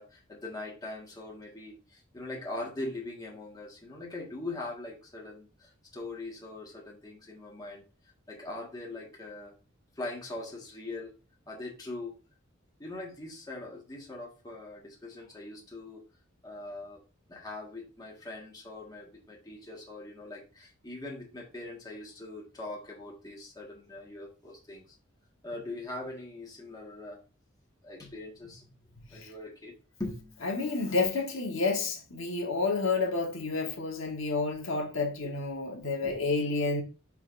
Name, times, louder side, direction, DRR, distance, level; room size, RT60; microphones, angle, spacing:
voice 1, 0.0-7.9 8.3-9.5 10.0-11.1 11.5-12.1 12.8-16.0 16.4-17.0 17.3-25.0 25.4-27.2 27.8-30.4 36.0-36.2, left 2 dB, 20° left, 1.6 m, -41 dB
voice 2, 30.4-36.8, left 3 dB, 70° left, 1.3 m, -30 dB
10.5 x 3.6 x 2.6 m
head